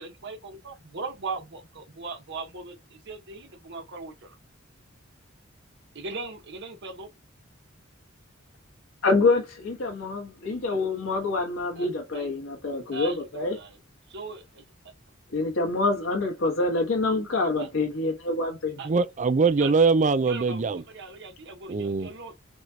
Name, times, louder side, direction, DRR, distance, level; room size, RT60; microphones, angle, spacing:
voice 1, 0.0-4.4 5.9-7.1 11.7-11.9 12.1-12.3 12.9-13.8 14.1-14.6 17.6-17.7 18.8-18.9 19.6-19.7 20.3-22.3, right 3 dB, 60° right, 1.2 m, -39 dB
voice 2, 9.0-13.6 15.3-18.8, left 3 dB, 85° left, 1.4 m, -26 dB
voice 3, 18.8-20.8 21.7-22.1, right 4 dB, 35° right, 0.4 m, -22 dB
6.1 x 2.4 x 2.8 m
head